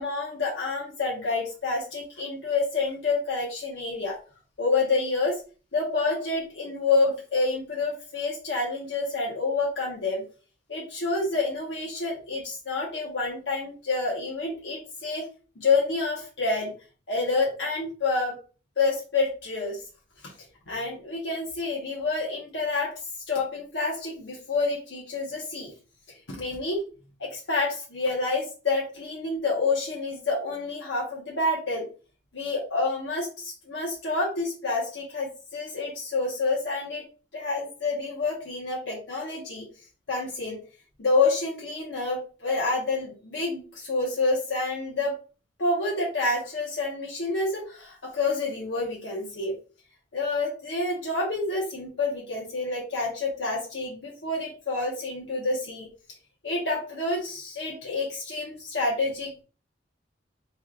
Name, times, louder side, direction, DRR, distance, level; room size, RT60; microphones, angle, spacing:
voice 1, 0.0-4.2 4.6-5.4 5.7-10.2 10.7-15.2 15.6-16.7 17.1-18.4 18.8-19.8 20.2-20.3 20.7-22.9 23.3-25.7 26.3-26.8 27.2-31.9 32.3-37.0 37.3-39.7 40.1-40.6 41.0-45.1 45.6-49.5 50.1-55.9 56.4-59.4, left 3 dB, 75° left, -4 dB, 1.1 m, -28 dB
4.4 x 3.1 x 2.5 m, 0.36 s
head